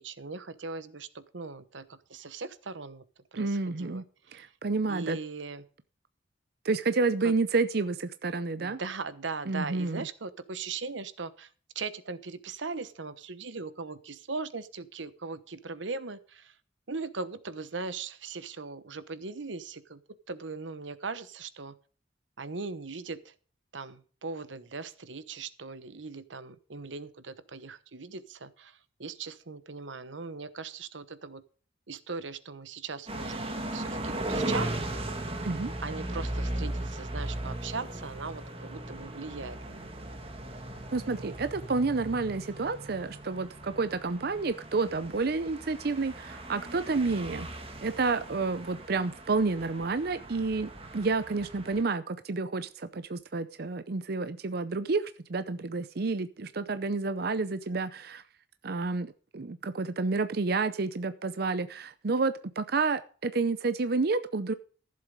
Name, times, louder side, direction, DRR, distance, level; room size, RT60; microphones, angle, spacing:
voice 1, 0.0-3.0 3.3-4.5 4.9-5.6 7.2-7.3 8.6-16.6 16.9-20.0 20.3-21.7 22.4-23.3 23.7-31.4 31.9-34.7 35.8-39.9, right 4 dB, 90° right, 1.1 m, -39 dB
voice 2, 3.4-4.0 4.3-5.2 6.6-8.8 9.5-10.1 35.4-35.7 40.9-47.5 47.8-58.2 58.6-64.5, right 3 dB, 55° right, 0.6 m, -30 dB
sound 1, 33.1-51.8, right 1 dB, 30° right, 1.9 m, -37 dB
14.5 x 7.7 x 5.2 m
head